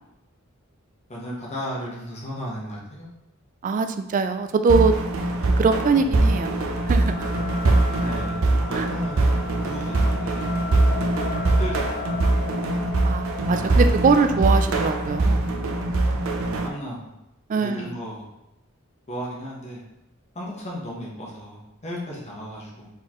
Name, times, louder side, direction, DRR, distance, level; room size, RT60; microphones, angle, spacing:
voice 1, 1.1-3.1 7.9-10.5 11.5-12.2 13.6-13.9 16.6-17.1 17.6-18.2 19.1-19.8 20.3-22.9, equal, 30° left, -5 dB, 1.2 m, -35 dB
voice 2, 3.6-4.9 5.6-6.6 6.9-7.3 8.8-8.9 13.0-15.5 17.5-18.0, right 4 dB, 40° right, 8 dB, 0.3 m, -22 dB
sound 1, 4.7-16.7, right 2 dB, 80° right, 0.6 m, -22 dB
sound 2, 5.8-14.2, left 7 dB, 60° left, 0.5 m, -37 dB
4.2 x 4.0 x 3.0 m, 0.90 s
head